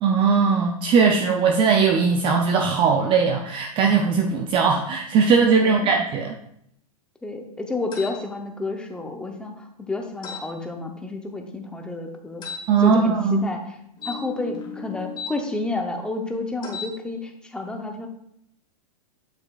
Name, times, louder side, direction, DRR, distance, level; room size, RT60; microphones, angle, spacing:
voice 1, 0.0-6.3 12.7-13.4, right 5 dB, 25° right, 3 dB, 0.5 m, -19 dB
voice 2, 5.6-6.0 7.2-12.4 12.8-13.8 14.0-18.1, left 2 dB, 5° left, 3 dB, 0.8 m, -30 dB
sound 1, 7.9-8.2 10.2-10.5 12.4-12.6 14.0-15.3 16.6-16.9, left 5 dB, 25° left, 1.3 m, -35 dB
7.8 x 6.4 x 2.4 m, 0.74 s
hypercardioid pair, 135°, 19 cm